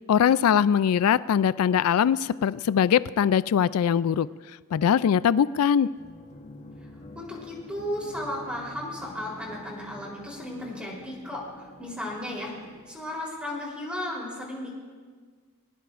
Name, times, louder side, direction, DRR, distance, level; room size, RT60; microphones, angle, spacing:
voice 1, 0.1-4.3 4.7-5.9, left 8 dB, 70° left, 18 dB, 0.3 m, -21 dB
sound 1, 5.9-13.5, left 1 dB, 35° left, 1.1 m, -47 dB
voice 2, 7.2-12.5 12.9-14.7, left 1 dB, 5° right, -3 dB, 3.6 m, -35 dB
20.5 x 19.5 x 2.5 m, 1.5 s
head